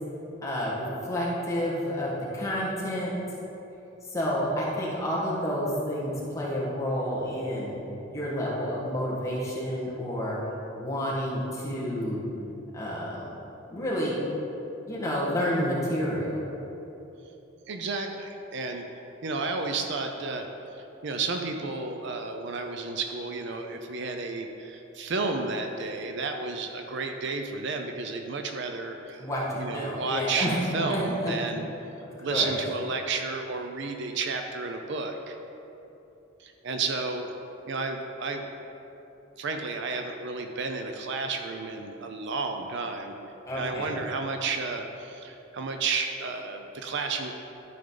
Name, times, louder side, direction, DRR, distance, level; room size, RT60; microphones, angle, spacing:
voice 1, 0.4-3.1 4.1-7.7 8.1-10.4 10.8-12.2 12.7-13.3 13.7-14.1 14.9-16.4 29.2-30.6 30.9-31.3 32.3-32.5 43.4-44.0, equal, 15° left, -7 dB, 1.7 m, -29 dB
voice 2, 17.7-18.9 19.2-20.5 20.8-29.2 29.6-30.5 30.7-31.7 32.2-35.4 36.4-37.3 37.7-38.5 39.4-43.2 43.5-47.3, right 4 dB, 60° right, 4 dB, 0.6 m, -32 dB
12.0 x 5.2 x 3.9 m, 3.0 s
head